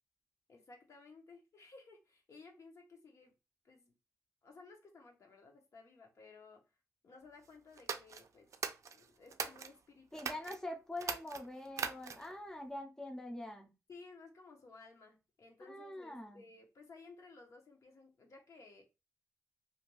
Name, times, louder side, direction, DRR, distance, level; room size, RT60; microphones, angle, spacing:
voice 1, 0.5-3.3 3.6-3.9 4.4-6.6 7.0-8.5 8.9-10.5 13.9-18.8, left 3 dB, 65° left, 0.8 m, -57 dB
sound 1, 7.8-9.7 10.2-10.6 11.0-12.4, right 6 dB, 70° right, 0.3 m, -41 dB
voice 2, 10.1-13.7 15.7-16.4, left 1 dB, 10° left, 0.5 m, -44 dB
2.5 x 2.2 x 2.9 m
wide cardioid pair, 135°, 6 cm